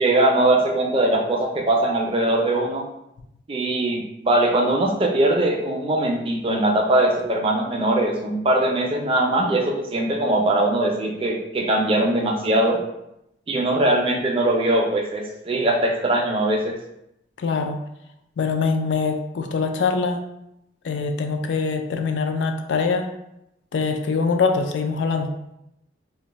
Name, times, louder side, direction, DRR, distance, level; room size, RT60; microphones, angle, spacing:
voice 1, 0.0-2.8 3.5-12.8 13.5-16.8, right 1 dB, 30° right, 0 dB, 0.4 m, -21 dB
voice 2, 17.4-17.8 18.4-20.2 20.8-23.1 23.7-25.3, left 4 dB, 65° left, 6 dB, 0.4 m, -23 dB
2.5 x 2.2 x 3.9 m, 0.84 s
head